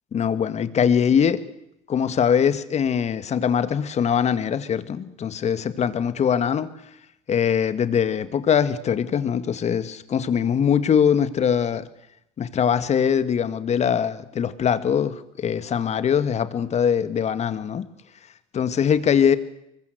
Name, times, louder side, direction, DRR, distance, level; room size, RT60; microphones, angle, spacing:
voice 1, 0.1-1.4 1.9-6.7 7.3-11.9 12.4-17.8 18.5-19.4, left 8 dB, 45° left, 13 dB, 2.0 m, -22 dB
24.5 x 21.5 x 8.0 m, 0.79 s
supercardioid pair, 80°, 16 cm